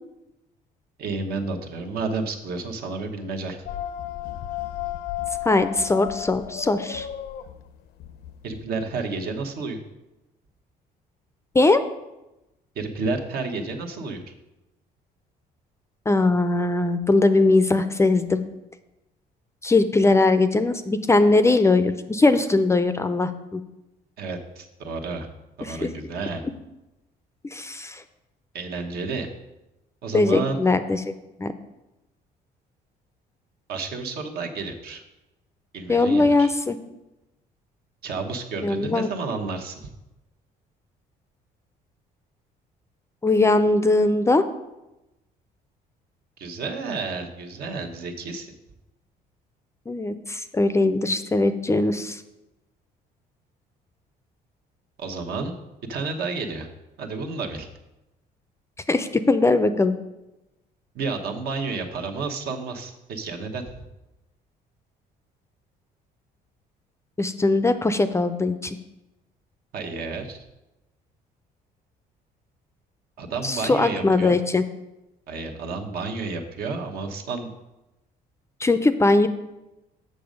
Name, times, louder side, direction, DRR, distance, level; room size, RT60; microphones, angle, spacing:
voice 1, 1.0-3.6 8.4-9.8 12.7-14.2 24.2-25.3 25.6-26.4 28.5-29.3 30.0-30.6 33.7-35.0 35.7-36.5 38.0-39.8 46.4-48.5 55.0-55.6 55.9-56.7 57.0-57.7 60.9-63.6 69.7-70.4 73.2-74.4 75.3-77.5, right 4 dB, 65° right, 3 dB, 1.2 m, -31 dB
sound 1, 3.7-8.6, left 13 dB, 75° left, 0.5 m, -33 dB
voice 2, 5.4-7.1 11.5-11.8 16.1-18.4 19.6-23.6 25.6-25.9 27.5-28.0 30.1-31.0 31.4-31.5 35.9-36.8 38.6-39.1 43.2-44.4 49.9-52.2 58.9-60.0 67.2-68.8 73.4-74.6 78.6-79.3, left 2 dB, 15° left, 10 dB, 0.4 m, -20 dB
6.8 x 6.4 x 5.2 m, 0.97 s
cardioid pair, 110°, 17 cm